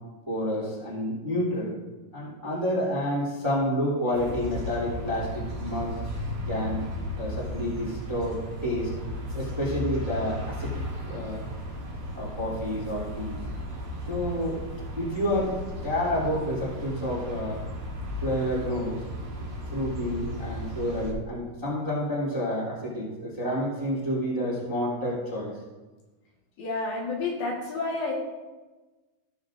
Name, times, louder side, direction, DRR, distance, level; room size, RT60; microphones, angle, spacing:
voice 1, 0.3-1.7 2.1-5.9 6.5-6.8 7.2-8.9 9.3-10.8 11.1-11.4 12.1-13.4 14.1-14.6 15.0-17.6 18.2-19.0 19.7-25.5, equal, 10° right, -7 dB, 2.1 m, -29 dB
sound 1, 4.1-21.1, left 1 dB, 45° right, 2.0 m, -35 dB
voice 2, 26.6-28.1, left 3 dB, 70° left, -2 dB, 3.1 m, -30 dB
16.0 x 7.1 x 2.6 m, 1.2 s
omnidirectional pair, 4.5 m